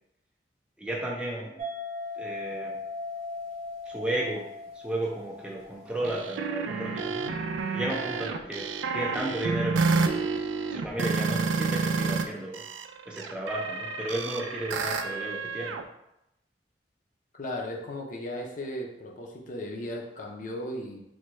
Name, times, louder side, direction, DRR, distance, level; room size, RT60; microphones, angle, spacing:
voice 1, 0.8-1.6 2.2-2.8 3.9-4.5 4.8-7.2 7.7-10.2 10.7-12.7 13.1-15.8, right 1 dB, 5° right, -3 dB, 0.3 m, -33 dB
sound 1, 1.6-6.3, left 2 dB, 40° right, 0.8 m, -38 dB
sound 2, 6.0-12.2 12.5-15.8, right 4 dB, 90° right, 0.3 m, -29 dB
voice 2, 7.0-7.4 17.4-21.0, left 1 dB, 45° left, 0 dB, 0.5 m, -36 dB
3.4 x 2.2 x 3.1 m, 0.83 s
head